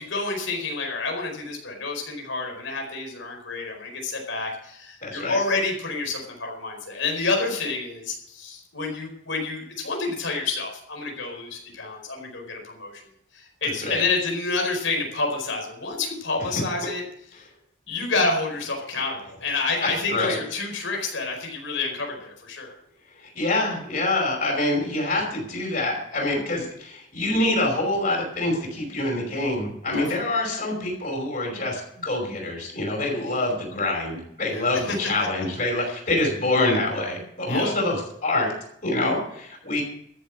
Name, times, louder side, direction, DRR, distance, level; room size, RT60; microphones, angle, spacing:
voice 1, 0.0-13.0 13.3-17.0 17.3-17.4 17.9-22.7 29.9-30.2 33.3-33.4 34.4-35.0 35.4-35.5 35.8-35.9 37.5-37.7, left 3 dB, 75° left, 2 dB, 4.8 m, -29 dB
voice 2, 5.0-5.4 13.8-14.0 19.8-20.4 23.2-38.5 38.8-39.8, left 2 dB, 45° left, 0 dB, 5.4 m, -26 dB
14.0 x 7.4 x 8.6 m, 0.71 s
head